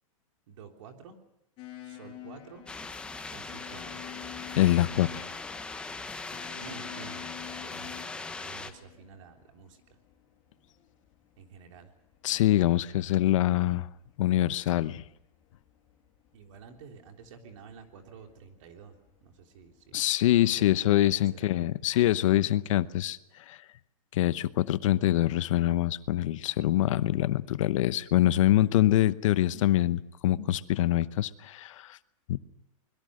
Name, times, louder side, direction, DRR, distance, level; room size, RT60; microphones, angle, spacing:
voice 1, 0.5-1.2 1.8-2.7 3.3-4.0 6.6-10.0 11.4-11.9 16.3-20.1 20.6-20.9 21.2-21.7, right 6 dB, 60° right, 3 dB, 3.6 m, -50 dB
sound 1, 1.6-20.0, left 13 dB, 30° left, 6.5 m, -50 dB
sound 2, 2.7-8.7, left 3 dB, 5° left, 1.1 m, -40 dB
voice 2, 4.6-5.2 12.2-13.9 14.2-15.0 19.9-23.2 23.5-23.6 24.1-32.0 32.3-32.4, left 14 dB, 60° left, 14 dB, 0.9 m, -25 dB
24.5 x 22.0 x 6.5 m, 0.78 s
supercardioid pair, 160°, 18 cm